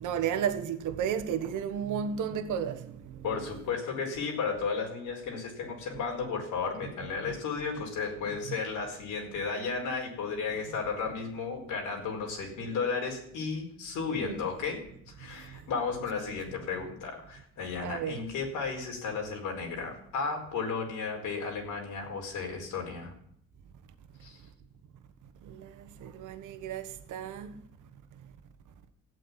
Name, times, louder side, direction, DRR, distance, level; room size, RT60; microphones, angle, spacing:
voice 1, 0.0-3.3 7.2-7.4 8.5-8.6 14.2-14.4 15.2-15.6 17.8-18.2 25.4-27.6, right 8 dB, 80° right, 1.3 m, -33 dB
voice 2, 3.2-14.8 15.2-23.1 24.2-24.4, left 5 dB, 90° left, 4.7 m, -34 dB
14.0 x 8.6 x 9.8 m
cardioid pair, 90°, 30 cm